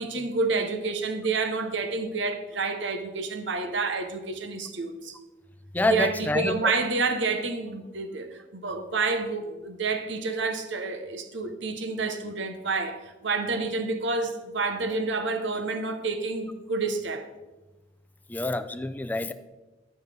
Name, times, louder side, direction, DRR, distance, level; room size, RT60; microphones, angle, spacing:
voice 1, 0.0-5.2 5.9-17.2, right 3 dB, 65° right, 0.9 m, -29 dB
voice 2, 5.7-6.7 18.3-19.3, left 2 dB, 10° left, 0.3 m, -27 dB
13.0 x 5.6 x 3.4 m
head